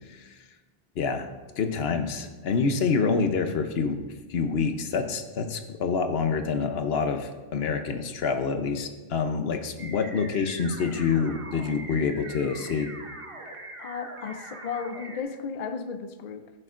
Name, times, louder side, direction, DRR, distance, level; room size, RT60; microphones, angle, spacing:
voice 1, 1.0-1.3 1.6-4.0 4.3-12.9, left 5 dB, 70° left, 7 dB, 1.0 m, -27 dB
sound 1, 9.8-15.2, right 2 dB, 30° right, 1.0 m, -42 dB
voice 2, 13.8-16.5, left 6 dB, 55° left, 9 dB, 0.5 m, -34 dB
14.0 x 6.6 x 2.5 m, 1.3 s
omnidirectional pair, 1.1 m